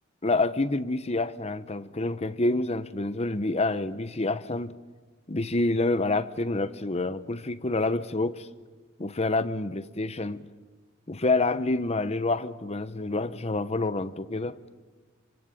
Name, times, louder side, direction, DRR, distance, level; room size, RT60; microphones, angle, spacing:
voice 1, 0.2-4.8 5.3-8.5 9.0-10.5 11.1-14.6, left 2 dB, 30° left, 1.0 m, -27 dB
26.0 x 25.0 x 9.1 m
head